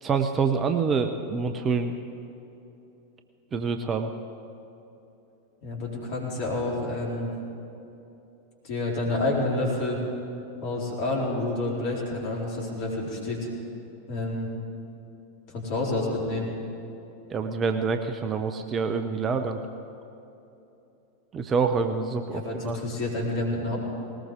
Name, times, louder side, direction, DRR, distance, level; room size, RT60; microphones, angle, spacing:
voice 1, 0.0-2.0 3.5-4.1 17.3-19.6 21.3-22.8, right 5 dB, 25° right, 7 dB, 0.8 m, -26 dB
voice 2, 5.6-7.3 8.6-10.0 10.6-13.5 14.1-14.5 15.5-16.5 22.3-23.8, left 2 dB, 45° left, -3 dB, 4.1 m, -29 dB
19.5 x 19.0 x 3.8 m, 2.9 s
figure-of-eight pair, 90°, 0 cm